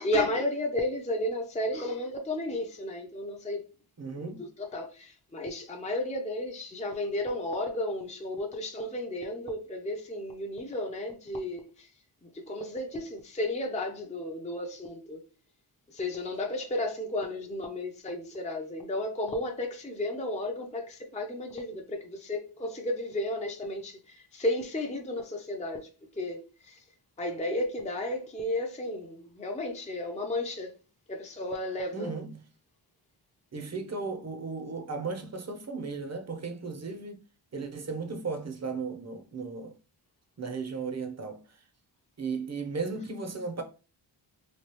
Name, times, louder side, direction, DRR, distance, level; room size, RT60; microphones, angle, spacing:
voice 1, 0.0-3.6 4.2-11.9 12.2-15.2 15.9-25.9 26.2-26.8 27.2-30.7 31.1-32.1, left 1 dB, 15° left, 0.6 m, -33 dB
voice 2, 4.0-4.5 31.9-32.4 33.5-37.2 37.5-39.7 40.4-41.4 42.2-43.6, right 4 dB, 35° right, 0.7 m, -35 dB
3.2 x 2.3 x 3.0 m
wide cardioid pair, 55°, 49 cm